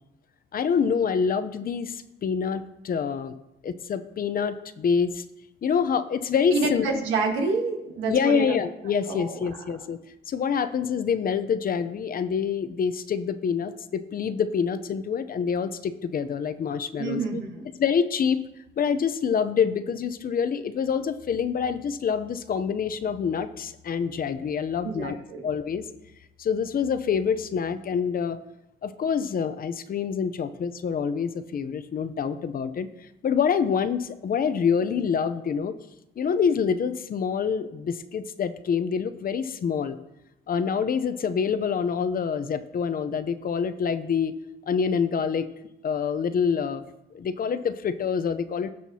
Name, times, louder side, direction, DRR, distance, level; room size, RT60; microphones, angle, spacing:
voice 1, 0.5-3.4 3.6-5.2 5.6-6.9 8.1-10.0 10.3-17.2 17.8-18.4 18.8-25.2 25.4-25.8 26.4-28.4 28.8-35.8 36.2-40.0 40.5-44.3 44.7-45.5 45.8-46.8 47.1-48.7, left 6 dB, 45° left, 12 dB, 0.7 m, -26 dB
voice 2, 6.5-8.6 9.1-9.6 16.9-17.6 24.8-25.4, right 3 dB, 90° right, 2 dB, 1.5 m, -28 dB
16.5 x 5.8 x 2.8 m, 0.88 s
cardioid pair, 90°, 20 cm